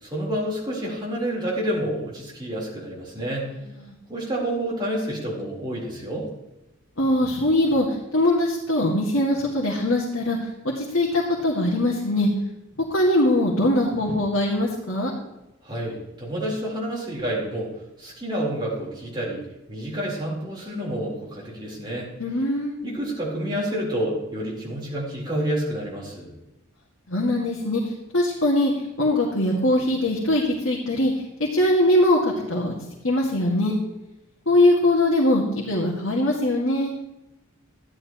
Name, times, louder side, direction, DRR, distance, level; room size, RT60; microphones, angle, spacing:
voice 1, 0.0-3.5 4.1-6.3 15.6-17.7 18.0-22.1 22.8-26.3, right 1 dB, 20° right, -5 dB, 3.9 m, -29 dB
voice 2, 7.0-7.9 8.1-10.4 10.8-12.3 12.9-15.1 22.2-22.8 27.1-27.8 28.1-28.7 29.0-31.1 31.4-32.7 33.0-33.8 34.5-36.9, left 1 dB, 75° left, -4 dB, 2.1 m, -21 dB
13.5 x 11.0 x 3.1 m, 0.96 s
head